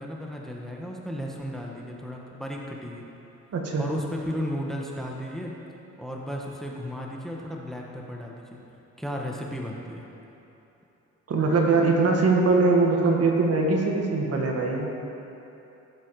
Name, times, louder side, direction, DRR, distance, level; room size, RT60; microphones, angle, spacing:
voice 1, 0.0-3.0 3.8-5.6 6.0-8.6 9.0-10.1, equal, ahead, -1 dB, 1.4 m, -34 dB
voice 2, 3.5-3.9 11.3-14.9, right 3 dB, 55° right, 0 dB, 1.8 m, -22 dB
15.5 x 7.6 x 4.9 m, 2.9 s
cardioid pair, 90°, 30 cm